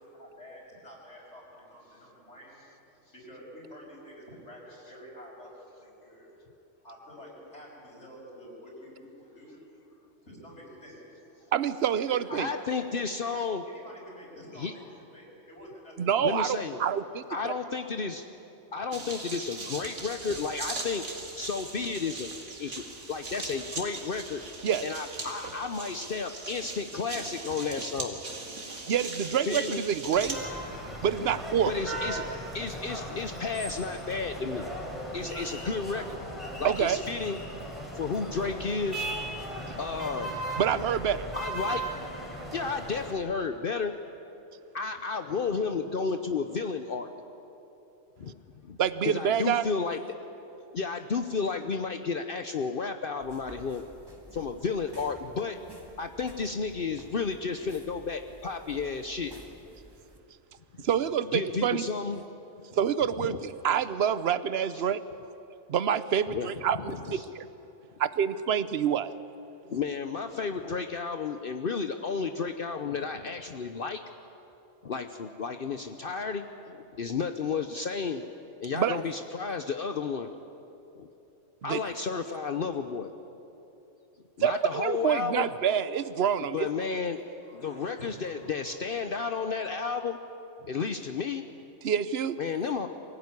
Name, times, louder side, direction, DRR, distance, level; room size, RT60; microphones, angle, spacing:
voice 1, 0.0-6.3 6.8-11.5 12.1-12.7 12.9-13.0 13.7-14.8 15.1-17.8 18.5-18.8 87.2-89.1 89.5-90.0, equal, 70° left, -3 dB, 6.3 m, -49 dB
voice 2, 11.5-12.5 16.0-17.5 24.6-24.8 28.9-30.4 31.0-31.7 36.6-37.0 40.6-41.3 48.8-49.6 60.8-61.8 62.7-65.0 65.7-67.5 68.0-69.1 78.7-79.0 81.7-81.8 84.4-86.7 91.8-92.4, right 8 dB, 60° right, 14 dB, 1.0 m, -27 dB
voice 3, 12.3-13.6 14.6-14.7 16.2-16.8 17.3-18.3 18.7-21.1 21.4-22.3 22.6-24.4 24.8-28.2 29.4-29.8 31.7-32.3 32.5-34.7 35.1-36.2 36.6-37.4 37.9-39.1 39.7-40.4 41.4-41.8 42.5-43.9 44.7-47.1 48.2-48.8 49.0-50.0 50.7-53.8 54.3-55.6 56.0-59.3 60.7-60.8 61.3-62.2 63.2-63.4 64.7-64.8 66.3-66.5 67.1-67.3 69.7-74.0 74.8-78.2 78.6-80.3 80.9-81.1 81.6-83.1 84.4-85.5 86.5-87.2 87.5-90.2 90.6-91.4 92.4-92.9, left 5 dB, 50° left, 7 dB, 0.9 m, -32 dB
sound 1, 18.9-30.3, right 3 dB, 75° right, 2.5 m, -39 dB
sound 2, 30.1-43.1, right 1 dB, ahead, 4.0 m, -37 dB
sound 3, 53.2-60.2, right 1 dB, 20° right, 1.8 m, -51 dB
23.5 x 16.0 x 9.7 m, 2.9 s
omnidirectional pair, 1.2 m